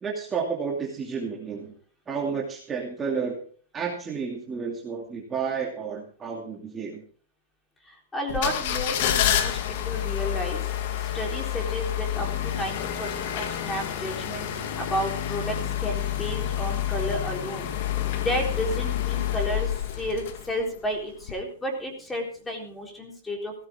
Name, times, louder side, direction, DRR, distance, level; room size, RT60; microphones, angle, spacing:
voice 1, 0.0-1.7 2.1-3.4 3.7-7.0, right 6 dB, 15° right, -1 dB, 2.6 m, -31 dB
voice 2, 7.8-17.7 18.1-23.5, equal, 10° left, 2 dB, 3.9 m, -32 dB
sound 1, 8.3-20.8 21.2-21.3, left 11 dB, 55° left, 2.1 m, -28 dB
16.5 x 13.5 x 3.7 m, 0.43 s
hypercardioid pair, 140°, 0 cm